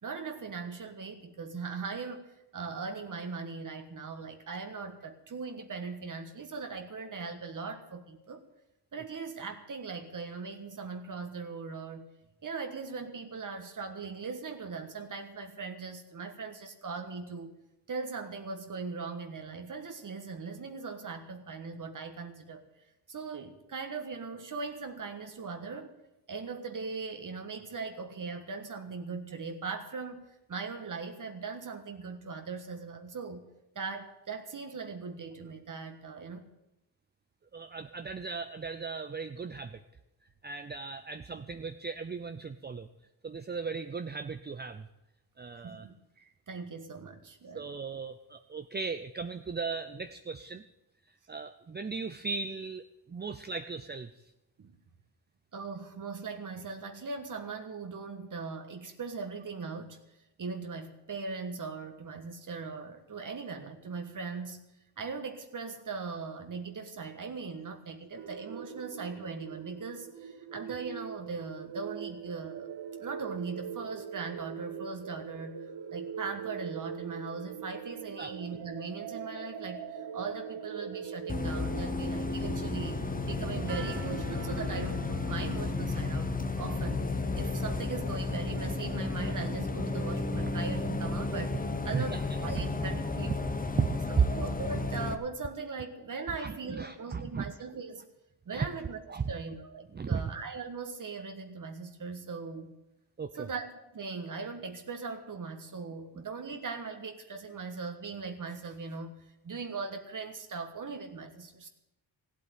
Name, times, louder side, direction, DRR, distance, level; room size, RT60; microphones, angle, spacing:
voice 1, 0.0-8.4 8.9-12.1 12.4-17.6 17.9-22.6 23.1-25.9 26.3-33.5 33.7-36.4 41.3-41.4 45.6-47.6 54.6-54.7 55.5-60.0 60.4-64.6 65.0-72.7 73.0-87.1 87.4-91.6 91.8-93.5 94.1-98.0 98.5-102.7 103.4-109.2 109.4-111.7, right 4 dB, 50° right, 6 dB, 1.5 m, -39 dB
voice 2, 37.5-39.8 40.4-42.9 43.2-44.9 45.4-45.9 47.5-50.6 51.3-54.1 78.2-78.3 91.9-92.2 93.8-94.3 96.4-97.4 98.5-98.7 99.1-99.3 99.9-100.2 103.2-103.5, right 5 dB, 25° right, 9 dB, 0.6 m, -35 dB
sound 1, 68.2-85.8, right 8 dB, 75° right, 1.3 m, -42 dB
Bus, 81.3-95.2, left 3 dB, 20° left, 1.2 m, -33 dB
15.0 x 8.3 x 9.3 m, 0.91 s
cardioid pair, 75°, 41 cm